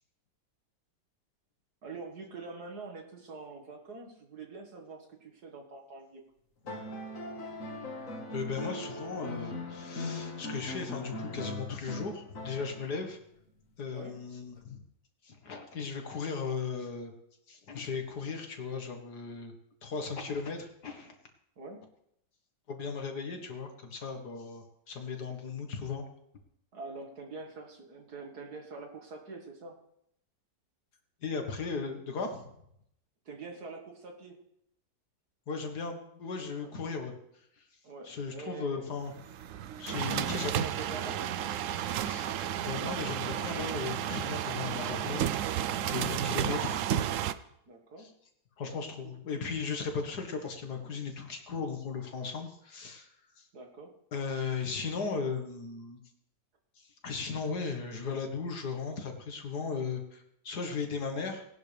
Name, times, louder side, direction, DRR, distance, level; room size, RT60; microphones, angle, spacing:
voice 1, 1.8-6.2 13.9-14.1 21.6-21.8 26.7-29.8 33.3-34.4 36.5-36.7 37.8-38.9 40.1-41.4 47.7-48.1 48.6-48.8 49.0-49.1 53.5-53.9, right 3 dB, 60° right, 3 dB, 2.2 m, -45 dB
sound 1, 6.6-13.1 14.6-14.7, left 1 dB, 45° left, 2.0 m, -40 dB
voice 2, 8.3-13.2 13.8-14.8 15.2-17.1 17.5-19.5 19.8-21.2 22.7-26.1 31.2-32.5 35.5-37.2 37.6-37.7 38.0-39.1 39.8-40.5 42.0-42.3 42.6-46.8 48.0-48.1 48.6-53.1 53.4-53.5 54.1-56.0 56.8-61.5, left 5 dB, 65° left, 4 dB, 2.0 m, -37 dB
sound 2, 39.1-47.3, right 10 dB, 75° right, 0.7 m, -32 dB
18.0 x 11.0 x 3.4 m, 0.75 s
omnidirectional pair, 1.9 m